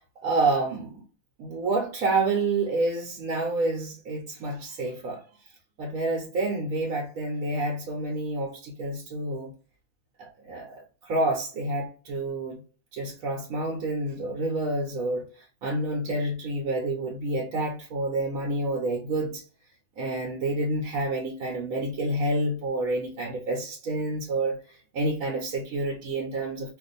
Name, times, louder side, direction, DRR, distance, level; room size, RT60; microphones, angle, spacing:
voice 1, 0.2-1.0 1.4-5.2 5.8-9.5 10.2-12.6 12.9-19.4 20.0-24.6 24.9-26.8, right 2 dB, 75° right, 1.1 m, -28 dB
2.5 x 2.5 x 3.9 m
omnidirectional pair, 1.5 m